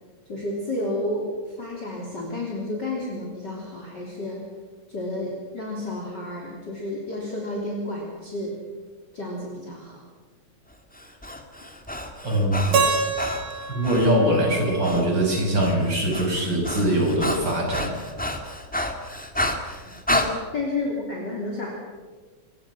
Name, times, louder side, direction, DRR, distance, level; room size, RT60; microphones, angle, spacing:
voice 1, 0.3-1.3 1.6-4.4 4.9-8.6 9.1-10.0 19.9-21.7, left 2 dB, 35° left, -2 dB, 3.7 m, -31 dB
Breathing, 10.9-14.2 14.8-15.1 15.3-20.3, left 1 dB, 5° left, 1.3 m, -30 dB
voice 2, 12.2-12.6 13.7-17.9, right 1 dB, 35° right, 0 dB, 6.4 m, -22 dB
Keyboard (musical), 12.7-15.7, right 4 dB, 85° right, 4.1 m, -27 dB
26.5 x 22.5 x 6.1 m, 1.5 s
omnidirectional pair, 3.4 m